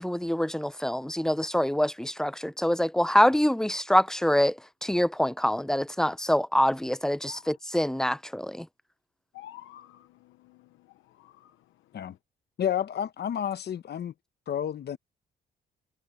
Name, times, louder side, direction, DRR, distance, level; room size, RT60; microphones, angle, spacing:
voice 1, 0.0-4.5 4.8-8.7, equal, 5° left, 0.6 m, -25 dB
voice 2, 9.3-11.6, left 13 dB, 90° left, 1.0 m, -50 dB
voice 3, 12.6-14.1 14.5-15.0, left 9 dB, 55° left, 1.0 m, -30 dB
cardioid pair, 90°, 20 cm